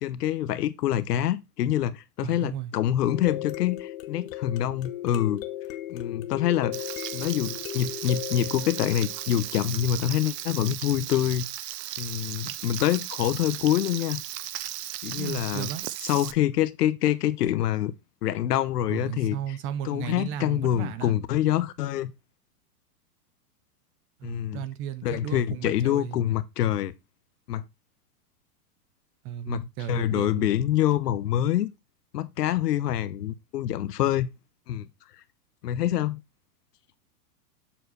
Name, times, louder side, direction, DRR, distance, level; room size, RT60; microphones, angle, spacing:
voice 1, 0.0-5.4 5.9-6.8 7.1-11.5 12.0-14.2 15.0-15.7 16.0-17.9 18.2-19.4 19.8-22.1 24.2-24.6 25.0-26.9 27.5-27.6 29.5-31.7 32.1-34.3 34.7-34.9 35.6-36.2, left 11 dB, 80° left, 1.0 m, -26 dB
voice 2, 2.2-2.7 15.2-15.8 18.9-21.1 24.2-26.2 29.2-30.5, right 10 dB, 30° right, 0.5 m, -35 dB
sound 1, 3.0-9.9 14.2-14.3 14.7-14.8, left 14 dB, 60° left, 1.0 m, -37 dB
Frying (food), 6.7-16.3, right 13 dB, 90° right, 0.7 m, -36 dB
7.5 x 4.5 x 4.0 m
hypercardioid pair, 130°, 46 cm